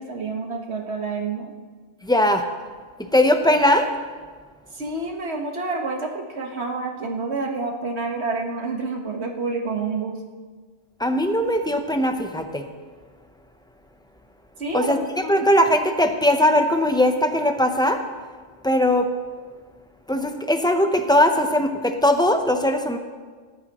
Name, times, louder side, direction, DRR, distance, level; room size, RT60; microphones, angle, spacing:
voice 1, 0.0-1.5 4.7-10.2 14.6-15.5, right 3 dB, 55° right, 2 dB, 1.7 m, -28 dB
voice 2, 2.0-2.4 3.0-3.9 11.0-12.6 14.7-18.0 18.6-19.1 20.1-23.0, left 1 dB, 5° left, 5 dB, 0.5 m, -20 dB
18.0 x 13.0 x 3.0 m, 1.5 s
omnidirectional pair, 1.4 m